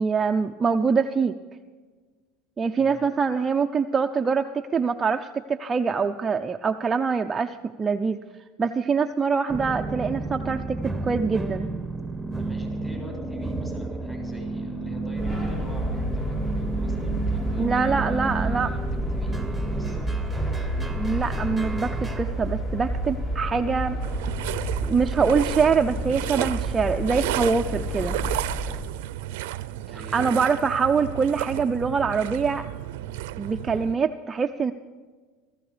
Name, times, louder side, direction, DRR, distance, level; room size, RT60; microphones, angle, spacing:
voice 1, 0.0-1.3 2.6-8.2 8.6-10.8 11.0-11.7 17.6-18.7 20.8-24.0 24.8-28.2 29.9-32.7 33.4-34.7, right 5 dB, 20° right, 5 dB, 0.6 m, -24 dB
voice 2, 2.8-3.1 12.4-18.8 19.1-20.5 29.9-30.6, equal, 15° left, 2 dB, 6.1 m, -43 dB
sound 1, 9.5-22.2, right 3 dB, ahead, 1.6 m, -32 dB
sound 2, 15.2-28.8, equal, 30° left, 4.3 m, -30 dB
sound 3, 24.0-34.0, right 15 dB, 80° right, 0.6 m, -33 dB
18.5 x 14.5 x 5.0 m, 1.4 s
supercardioid pair, 120°, 0 cm